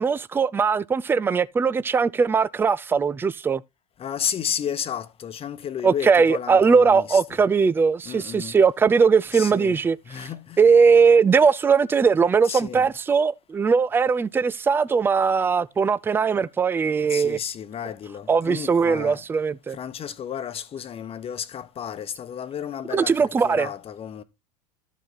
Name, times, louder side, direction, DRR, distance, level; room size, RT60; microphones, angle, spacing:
voice 1, 0.0-3.6 5.8-10.0 10.6-17.4 18.3-19.8 22.9-23.7, right 5 dB, 10° right, 0.4 m, -20 dB
voice 2, 4.0-7.4 8.0-8.6 9.3-10.6 12.4-12.9 17.1-19.2 19.7-24.2, left 9 dB, 30° left, 1.0 m, -33 dB
12.5 x 5.4 x 4.0 m
figure-of-eight pair, 80°, 21 cm